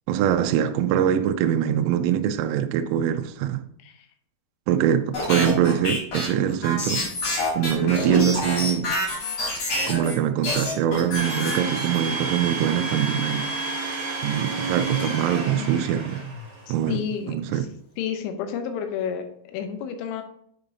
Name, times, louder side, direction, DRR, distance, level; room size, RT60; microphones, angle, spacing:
voice 1, 0.1-3.6 4.7-7.1 7.6-8.9 9.9-13.4 14.2-16.2 16.7-17.0 17.3-17.7, right 10 dB, 85° right, 3.0 m, -23 dB
sound 1, 5.1-10.1 10.4-12.1, left 1 dB, 40° left, 3.5 m, -27 dB
Domestic sounds home sounds, 11.1-16.6, right 2 dB, 60° right, 1.1 m, -30 dB
voice 2, 16.7-17.7 18.0-20.2, left 8 dB, 80° left, 3.1 m, -31 dB
8.9 x 5.3 x 2.7 m
omnidirectional pair, 6.0 m